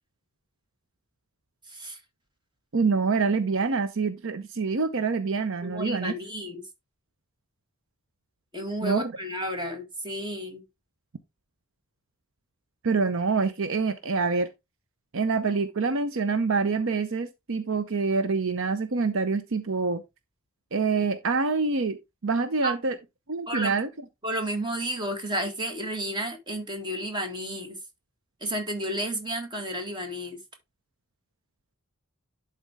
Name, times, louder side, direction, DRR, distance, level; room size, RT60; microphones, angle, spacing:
voice 1, 1.7-2.0 5.6-6.7 8.5-10.6 22.6-22.7 23.5-23.7 24.2-27.8 28.4-30.4, right 1 dB, 20° right, 1.8 m, -32 dB
voice 2, 2.7-6.1 8.8-9.1 12.8-14.5 15.1-20.0 20.7-22.0 22.2-23.0 23.3-23.9, right 4 dB, 65° right, 0.7 m, -26 dB
11.0 x 4.4 x 3.5 m
head